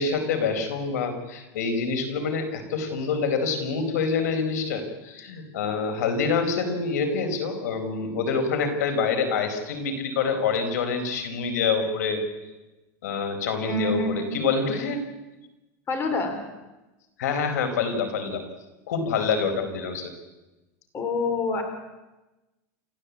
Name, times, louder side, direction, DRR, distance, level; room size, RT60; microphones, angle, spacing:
voice 1, 0.0-12.5 13.0-15.0 17.2-18.4 18.9-20.1, left 5 dB, 90° left, 7 dB, 4.7 m, -26 dB
voice 2, 13.6-14.3 15.9-16.4 20.9-21.6, left 2 dB, 25° left, 6 dB, 4.0 m, -26 dB
29.0 x 14.0 x 8.4 m, 1.1 s
supercardioid pair, 150°, 9 cm